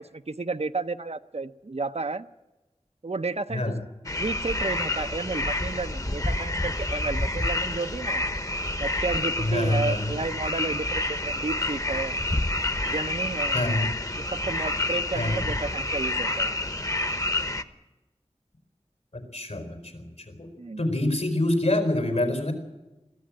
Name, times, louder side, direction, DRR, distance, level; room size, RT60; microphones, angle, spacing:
voice 1, 0.0-2.3 3.0-3.7 4.2-8.3 8.8-12.1 12.8-13.6 14.3-16.5 20.6-20.8, right 3 dB, 65° right, 11 dB, 0.7 m, -32 dB
voice 2, 3.5-3.8 9.4-10.2 13.5-13.9 15.1-15.5 19.1-20.5 20.8-22.5, left 1 dB, 85° left, 6 dB, 4.5 m, -26 dB
sound 1, 4.1-17.6, left 1 dB, 30° left, 1.0 m, -28 dB
22.0 x 14.5 x 8.8 m, 1.1 s
wide cardioid pair, 50°, 12 cm